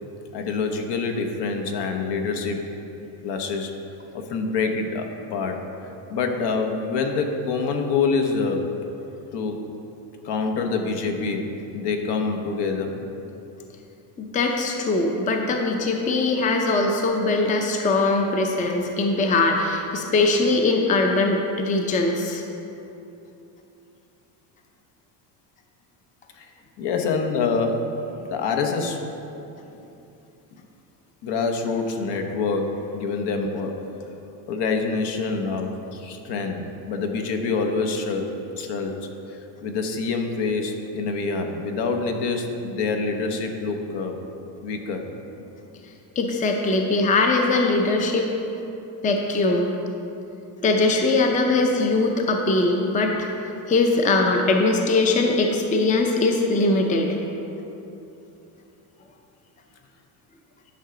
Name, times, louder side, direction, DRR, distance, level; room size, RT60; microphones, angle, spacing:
voice 1, 0.3-2.6 3.2-3.7 4.1-5.6 6.1-8.7 9.3-9.7 10.2-13.0 26.3-26.5 26.8-28.0 28.2-29.0 31.2-33.8 34.5-44.2 44.6-45.1, left 4 dB, 60° left, 4 dB, 1.0 m, -26 dB
voice 2, 14.2-22.4 46.2-48.3 49.0-49.7 50.6-53.3 53.7-57.1, left 3 dB, 15° left, 2 dB, 0.5 m, -21 dB
11.0 x 5.7 x 3.8 m, 2.9 s
cardioid pair, 125°, 46 cm